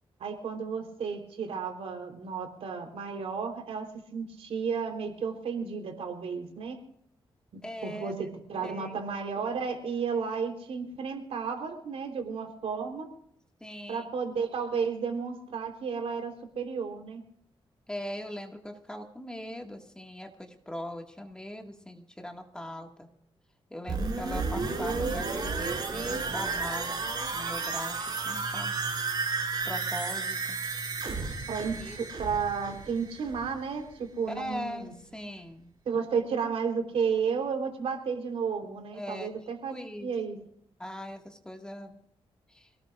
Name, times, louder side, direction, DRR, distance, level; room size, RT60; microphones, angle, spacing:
voice 1, 0.2-6.8 7.5-13.1 13.9-17.2 31.5-34.9 35.9-39.7 40.0-40.4, right 6 dB, 85° right, 3 dB, 3.7 m, -33 dB
voice 2, 7.6-8.1 8.6-9.0 13.6-14.1 17.9-23.1 23.7-27.0 27.3-28.8 29.6-30.6 31.8-32.1 34.3-35.7 38.9-39.3 39.7-40.1 40.8-42.0 42.5-42.7, left 1 dB, 10° left, 2 dB, 1.9 m, -40 dB
sound 1, 23.9-33.6 33.9-34.0, right 4 dB, 45° right, 6.0 m, -32 dB
26.5 x 18.5 x 2.5 m, 0.70 s
wide cardioid pair, 140°, 10 cm